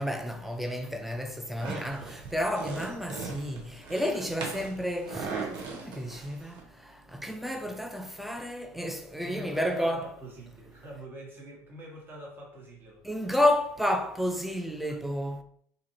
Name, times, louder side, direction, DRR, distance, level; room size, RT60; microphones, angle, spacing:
voice 1, 0.0-3.6 3.9-6.5 7.1-10.1 13.0-15.4, left 1 dB, ahead, 0.4 m, -31 dB
sound 1, 1.6-6.6, right 4 dB, 55° right, 0.8 m, -39 dB
voice 2, 9.2-13.3 14.9-15.0, right 1 dB, 25° right, 1.1 m, -45 dB
2.6 x 2.5 x 2.9 m
hypercardioid pair, 75°, 9 cm